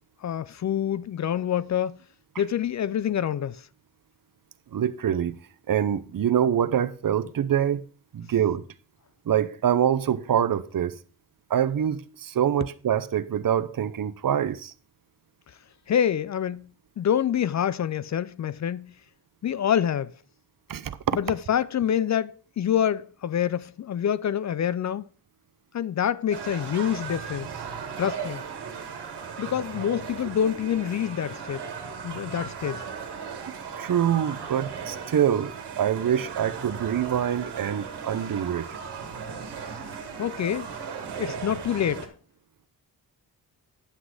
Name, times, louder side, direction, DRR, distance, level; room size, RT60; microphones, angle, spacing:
voice 1, 0.2-2.0 2.4-3.6 15.9-16.7 17.0-18.9 19.4-20.1 21.1-25.0 25.7-27.5 28.0-28.4 29.4-31.6 32.0-32.8 40.2-40.7 41.2-42.1, left 9 dB, 45° left, 0.4 m, -26 dB
voice 2, 4.7-5.3 5.7-7.8 8.1-8.6 9.3-11.0 11.5-14.7 20.7-21.2 33.8-38.7, right 9 dB, 55° right, 0.7 m, -25 dB
sound 1, 26.3-42.1, right 6 dB, 75° right, 1.7 m, -37 dB
9.8 x 6.0 x 4.8 m
cardioid pair, 75°, 40 cm